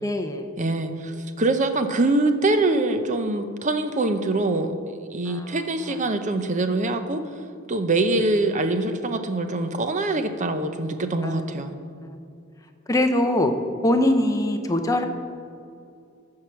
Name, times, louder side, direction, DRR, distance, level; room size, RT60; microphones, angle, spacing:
voice 1, 0.0-0.5 5.3-6.0 8.1-8.2 11.2-11.6 12.0-12.2 12.9-13.5 13.8-15.0, left 1 dB, 15° left, 5 dB, 0.7 m, -23 dB
voice 2, 0.6-4.7 5.1-7.2 7.7-11.8, right 2 dB, 35° right, 8 dB, 0.7 m, -24 dB
14.0 x 4.8 x 5.8 m, 2.5 s
head